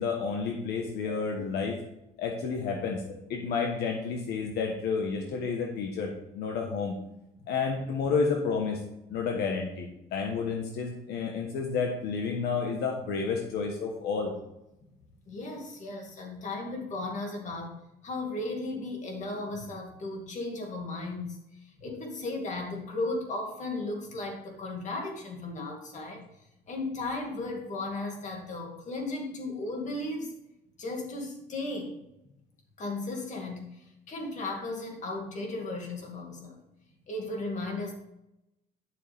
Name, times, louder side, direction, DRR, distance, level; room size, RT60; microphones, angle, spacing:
voice 1, 0.0-1.8 2.2-6.9 7.5-8.8 9.1-14.3 21.9-22.0 25.6-25.7, left 5 dB, 75° left, 2 dB, 1.3 m, -30 dB
voice 2, 15.3-17.7 18.0-26.2 26.7-30.3 30.8-31.9 32.8-36.6 37.1-37.9, left 2 dB, 45° left, 1 dB, 2.4 m, -35 dB
10.5 x 6.9 x 3.6 m, 0.87 s
cardioid pair, 110°, 17 cm